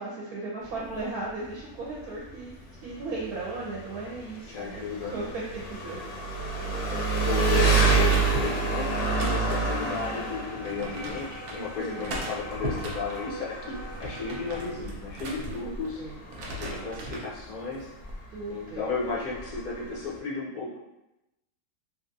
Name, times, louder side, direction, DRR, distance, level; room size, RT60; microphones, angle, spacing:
voice 1, 0.0-2.6 2.8-6.0 11.7-12.1 15.6-16.2 16.5-17.1 18.3-18.8, right 3 dB, 90° right, -4 dB, 1.1 m, -36 dB
Engine, 0.6-20.2, right 3 dB, 80° left, 1.1 m, -29 dB
voice 2, 4.5-5.3 7.2-16.0 16.6-17.9 18.5-20.8, left 4 dB, 65° left, -6 dB, 0.4 m, -34 dB
sound 1, 7.5-14.8, equal, 45° right, 0.9 m, -44 dB
sound 2, 7.5-9.9 10.7-11.6 12.0-13.3 13.7-15.9 16.2-17.3 17.8-18.2, right 1 dB, 75° right, 0.5 m, -37 dB
3.1 x 2.3 x 2.6 m, 0.93 s
omnidirectional pair, 1.5 m